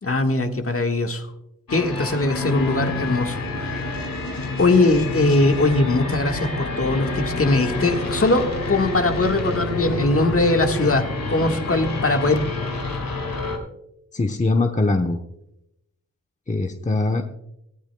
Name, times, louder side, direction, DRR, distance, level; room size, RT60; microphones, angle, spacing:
voice 1, 0.0-1.3 1.7-3.9 4.6-12.4, left 2 dB, 45° left, 4 dB, 1.5 m, -21 dB
sound 1, 1.7-13.6, left 2 dB, 90° left, 2.3 m, -28 dB
voice 2, 14.1-15.2 16.5-17.2, left 2 dB, 20° left, 4 dB, 0.9 m, -21 dB
18.5 x 14.0 x 2.2 m, 0.83 s
wide cardioid pair, 75°, 33 cm